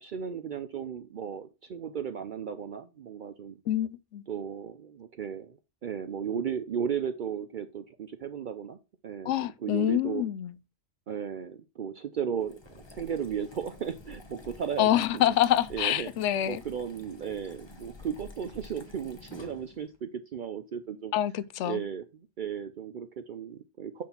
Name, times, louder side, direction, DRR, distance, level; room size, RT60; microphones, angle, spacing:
voice 1, 0.0-3.6 4.3-8.8 9.0-10.2 11.1-15.2 15.7-16.1 16.4-21.1 21.6-24.0, right 8 dB, 55° right, 0.6 m, -35 dB
voice 2, 3.7-4.2 9.3-10.5 14.8-16.6 21.1-21.8, left 12 dB, 85° left, 0.9 m, -26 dB
sound 1, 12.3-20.0, left 3 dB, 25° left, 0.9 m, -50 dB
6.1 x 5.6 x 4.2 m
omnidirectional pair, 1.2 m